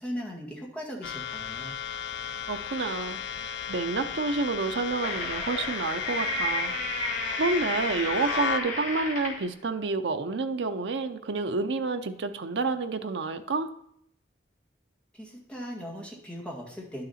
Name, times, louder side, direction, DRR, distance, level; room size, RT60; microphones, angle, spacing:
voice 1, 0.0-1.8 15.1-17.1, equal, 5° left, -2 dB, 1.7 m, -38 dB
sound 1, 1.0-8.6, left 7 dB, 75° left, 0.5 m, -35 dB
voice 2, 2.5-6.8 7.3-13.7, right 3 dB, 70° right, 7 dB, 0.6 m, -29 dB
sound 2, 4.6-9.5, left 2 dB, 45° left, 2.0 m, -32 dB
10.5 x 6.5 x 4.2 m, 0.72 s
head